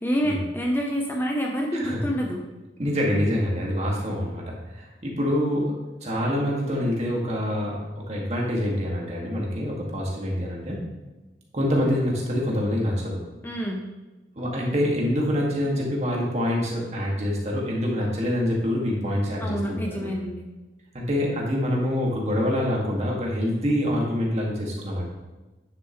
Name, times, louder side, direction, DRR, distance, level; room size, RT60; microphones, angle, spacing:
voice 1, 0.0-2.4 13.4-13.9 19.4-20.5, equal, 10° left, -1 dB, 0.7 m, -27 dB
voice 2, 2.8-10.8 11.5-13.2 14.4-20.1 20.9-25.0, equal, 40° right, -3 dB, 2.0 m, -26 dB
9.7 x 6.8 x 3.1 m, 1.2 s
head